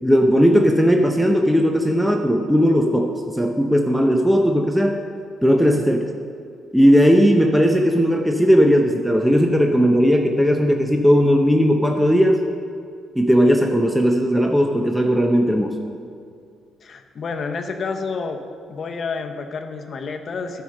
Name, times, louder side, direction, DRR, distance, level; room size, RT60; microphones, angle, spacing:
voice 1, 0.0-5.1 5.4-6.1 6.7-12.4 13.2-15.8, equal, ahead, 2 dB, 0.6 m, -17 dB
voice 2, 16.8-18.4 18.7-20.6, left 4 dB, 50° left, 5 dB, 0.8 m, -29 dB
10.0 x 4.7 x 6.5 m, 2.3 s
cardioid pair, 90°, 0 cm